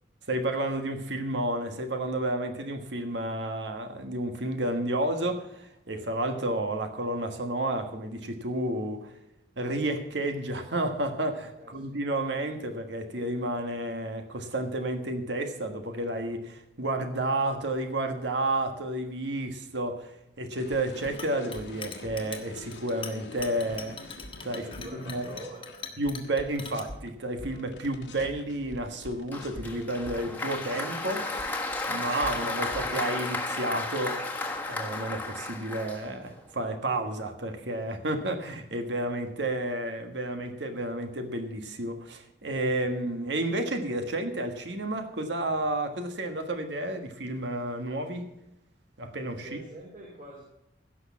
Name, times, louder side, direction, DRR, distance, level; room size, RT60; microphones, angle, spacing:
voice 1, 0.3-9.1 9.6-24.1 24.4-25.2 26.0-31.3 31.9-34.2 34.7-48.3 49.0-49.6, right 1 dB, 70° right, 6 dB, 1.5 m, -31 dB
voice 2, 11.6-12.0 24.5-26.0 49.4-50.4, right 1 dB, 45° right, -3 dB, 3.0 m, -45 dB
sound 1, 20.6-27.1 27.4-33.0, left 1 dB, 75° left, 1.8 m, -45 dB
Chink clink, 21.0-26.8, left 6 dB, 25° left, 1.4 m, -42 dB
Applause, 29.3-36.4, left 2 dB, 10° left, 1.4 m, -33 dB
16.0 x 6.4 x 7.3 m, 0.85 s
head